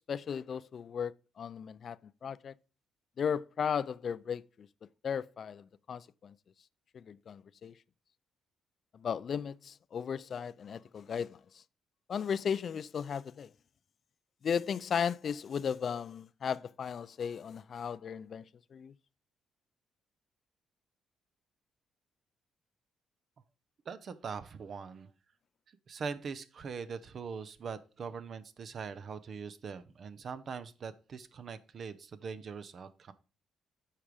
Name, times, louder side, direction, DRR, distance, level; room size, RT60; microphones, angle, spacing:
voice 1, 0.1-2.5 3.2-4.7 5.0-6.3 6.9-7.7 8.9-11.6 12.1-13.5 14.4-18.9, left 7 dB, 55° left, 0.4 m, -36 dB
voice 2, 23.9-25.1 25.9-33.1, right 5 dB, 50° right, 0.7 m, -42 dB
8.8 x 4.8 x 5.0 m
cardioid pair, 90°, 0 cm